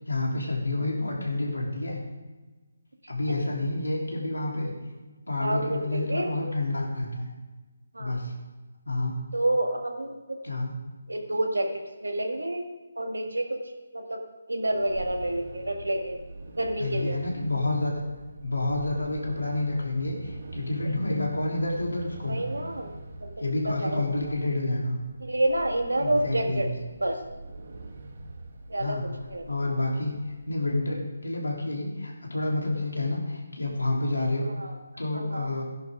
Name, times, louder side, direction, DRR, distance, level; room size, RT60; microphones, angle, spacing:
voice 1, 0.1-2.0 3.1-4.7 5.3-7.3 8.0-8.4 8.9-9.2 10.4-10.8 16.8-18.0 18.4-22.4 23.4-25.0 26.0-26.7 28.8-29.0 29.5-30.1 30.5-34.5 35.0-35.6, left 2 dB, 90° left, -1 dB, 3.3 m, -29 dB
voice 2, 5.4-6.3 7.9-8.2 9.3-10.4 11.1-12.7 13.0-13.6 13.9-14.2 14.5-16.2 16.6-17.2 21.1-21.2 22.2-23.3 23.7-24.0 25.2-26.7 27.0-27.2 28.7-29.0 29.3-29.5 34.6-34.7 35.1-35.5, right 1 dB, 90° right, 4 dB, 1.7 m, -29 dB
sound 1, 14.7-30.7, right 2 dB, 55° right, 1.3 m, -44 dB
14.5 x 10.5 x 3.6 m, 1.2 s
figure-of-eight pair, 155°, 0 cm